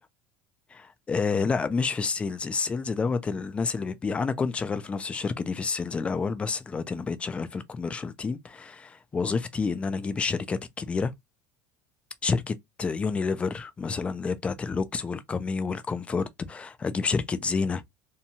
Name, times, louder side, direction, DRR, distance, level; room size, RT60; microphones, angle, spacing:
voice 1, 0.7-11.1 12.2-17.8, left 4 dB, 15° left, 0.4 m, -29 dB
2.7 x 2.2 x 2.7 m
cardioid pair, 140°, 7 cm